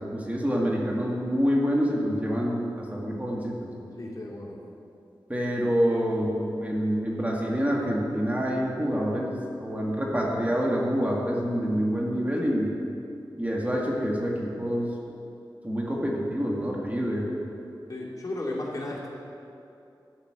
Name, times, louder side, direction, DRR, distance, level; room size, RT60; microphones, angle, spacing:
voice 1, 0.0-3.7 5.3-12.7 13.4-15.0 15.6-17.3, equal, 20° right, -3 dB, 2.0 m, -27 dB
voice 2, 4.0-4.6 17.9-19.1, left 1 dB, 45° left, -5 dB, 2.8 m, -34 dB
13.0 x 5.7 x 7.7 m, 2.6 s
cardioid pair, 50°, 8 cm